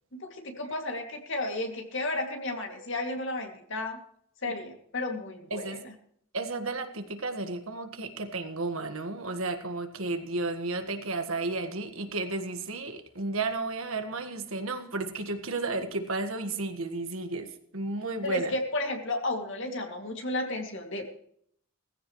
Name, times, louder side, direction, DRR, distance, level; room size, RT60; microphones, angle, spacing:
voice 1, 0.1-4.0 4.4-5.9 18.2-21.2, left 2 dB, 55° left, 3 dB, 2.5 m, -33 dB
voice 2, 5.5-5.8 6.3-18.5, right 3 dB, 65° right, 7 dB, 1.7 m, -33 dB
17.0 x 15.0 x 3.2 m, 0.65 s
head